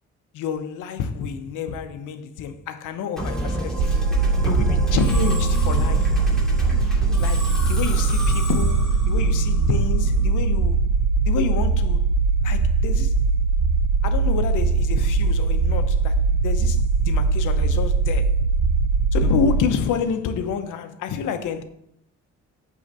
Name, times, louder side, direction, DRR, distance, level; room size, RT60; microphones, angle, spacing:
voice 1, 0.3-3.9 4.4-6.1 7.2-10.8 11.3-12.1 12.4-13.1 14.0-18.3 19.1-21.6, left 7 dB, 85° left, 0.9 m, -28 dB
Musical instrument, 3.2-10.5, right 1 dB, ahead, 2.7 m, -30 dB
sound 1, 3.8-19.6, right 4 dB, 65° right, 1.9 m, -20 dB
8.5 x 3.9 x 6.7 m
cardioid pair, 90°, 30 cm